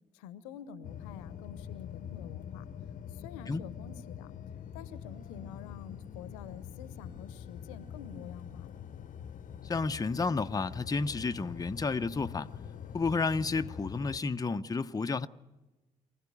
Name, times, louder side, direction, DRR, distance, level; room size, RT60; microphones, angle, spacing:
voice 1, 0.1-2.6 3.1-4.3 4.7-8.8, left 8 dB, 80° left, 1.0 m, -48 dB
sound 1, 0.8-14.2, left 8 dB, 50° left, 0.9 m, -44 dB
voice 2, 9.6-12.5 12.9-15.3, left 4 dB, 20° left, 0.7 m, -31 dB
24.0 x 15.5 x 9.4 m
hypercardioid pair, 45°, 17 cm